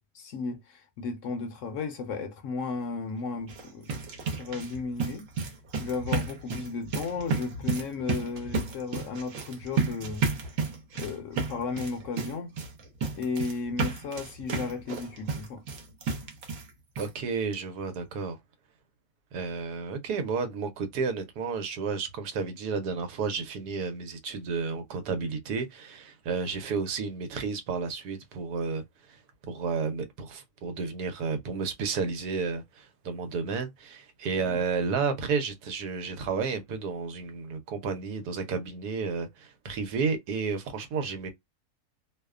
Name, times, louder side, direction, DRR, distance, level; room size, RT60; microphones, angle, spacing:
voice 1, 0.1-3.9 4.3-5.3 5.8-10.3 11.0-12.5 13.2-15.6 34.4-34.6, left 4 dB, 65° left, 0.8 m, -34 dB
Running on carpet, 3.4-16.7 17.0-17.1 17.5-17.6 17.9-18.0, right 4 dB, 65° right, 1.1 m, -32 dB
voice 2, 17.0-18.4 19.3-28.8 29.1-29.2 29.5-41.3, right 5 dB, 85° right, 1.2 m, -32 dB
2.8 x 2.1 x 2.3 m
omnidirectional pair, 1.6 m